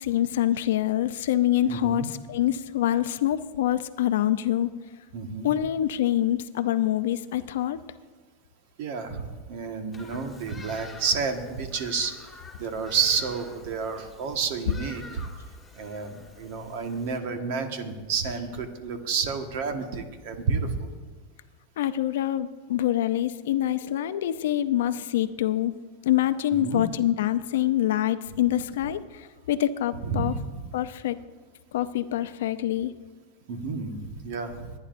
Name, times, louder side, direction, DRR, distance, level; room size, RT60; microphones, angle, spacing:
voice 1, 0.0-4.7 5.4-7.8 21.8-25.7 26.0-30.4 30.7-31.2 31.7-32.9, left 12 dB, 80° left, 12 dB, 0.6 m, -25 dB
voice 2, 1.7-2.1 5.1-5.5 8.8-15.2 15.8-20.9 26.6-26.8 30.0-30.6 33.5-34.7, right 5 dB, 65° right, 5 dB, 1.5 m, -30 dB
Bird vocalization bird call bird song, 9.9-17.2, left 3 dB, 5° left, 2.2 m, -47 dB
25.5 x 9.8 x 2.6 m, 1.4 s
supercardioid pair, 125°, 0 cm